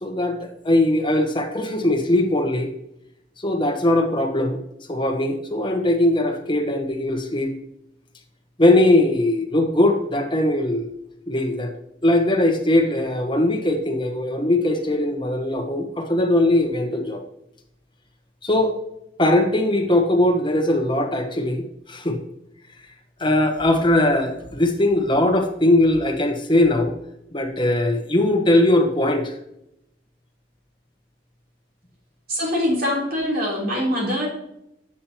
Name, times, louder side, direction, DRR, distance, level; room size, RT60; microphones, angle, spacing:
voice 1, 0.0-2.7 3.4-4.6 4.9-7.5 8.6-10.9 11.3-11.7 12.0-17.2 18.4-18.7 19.2-22.2 23.2-26.9 27.3-29.3, left 1 dB, 25° left, 3 dB, 1.1 m, -20 dB
voice 2, 32.3-34.3, left 1 dB, 55° right, -3 dB, 3.4 m, -23 dB
8.5 x 7.2 x 2.9 m, 0.80 s
head